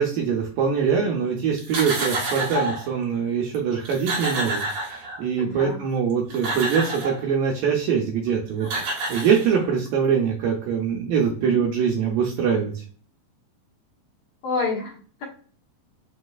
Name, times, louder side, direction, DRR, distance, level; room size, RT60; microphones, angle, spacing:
voice 1, 0.0-12.8, right 6 dB, 80° right, -1 dB, 2.1 m, -23 dB
sound 1, 1.6-2.9 3.5-3.6 3.8-5.4 6.1-7.2 8.3-8.4 8.6-9.9, right 2 dB, 65° right, 1.5 m, -28 dB
voice 2, 5.4-5.8 11.4-11.6 14.4-15.2, left 4 dB, 65° left, -4 dB, 2.5 m, -29 dB
6.0 x 3.1 x 2.3 m, 0.42 s
omnidirectional pair, 4.6 m